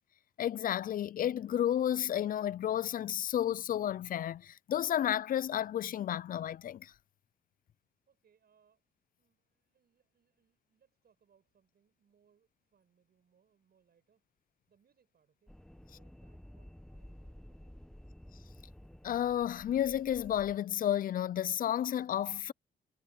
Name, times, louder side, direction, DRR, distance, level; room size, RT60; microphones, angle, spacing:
voice 1, 0.4-6.9 19.0-22.5, left 10 dB, 45° left, 0.4 m, -32 dB
voice 2, 8.1-8.9 9.2-14.3 14.7-17.9, right 7 dB, 50° right, 7.0 m, -73 dB
sound 1, 15.5-20.6, equal, 5° left, 1.0 m, -53 dB
cardioid pair, 90°, 20 cm